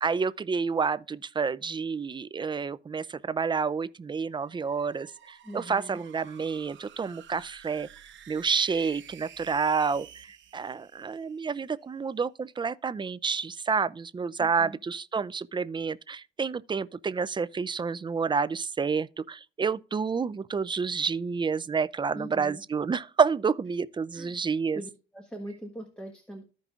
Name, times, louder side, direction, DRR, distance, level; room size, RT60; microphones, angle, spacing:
voice 1, 0.0-7.9 8.3-24.8, right 5 dB, 25° right, 0.4 m, -29 dB
sound 1, 4.3-11.7, right 9 dB, 70° right, 1.0 m, -52 dB
voice 2, 5.4-6.0 14.4-14.8 22.1-22.6 24.1-24.4 24.7-26.4, equal, 5° left, 1.4 m, -42 dB
14.5 x 5.3 x 2.4 m
cardioid pair, 90°, 20 cm